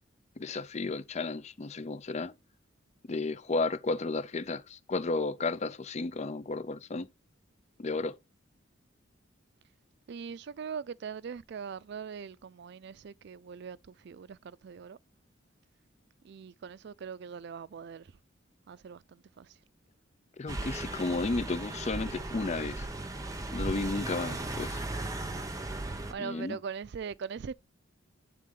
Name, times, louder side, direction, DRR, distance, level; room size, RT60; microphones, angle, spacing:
voice 1, 0.4-2.3 3.1-7.1 7.8-8.1 20.4-22.9 23.5-24.8 26.2-26.6, left 3 dB, 35° left, 0.5 m, -33 dB
voice 2, 10.1-15.0 16.2-18.1 18.7-19.6 26.1-27.5, right 6 dB, 60° right, 0.4 m, -41 dB
sound 1, 20.5-26.1, right 2 dB, 20° right, 0.8 m, -37 dB
8.3 x 3.6 x 3.7 m
head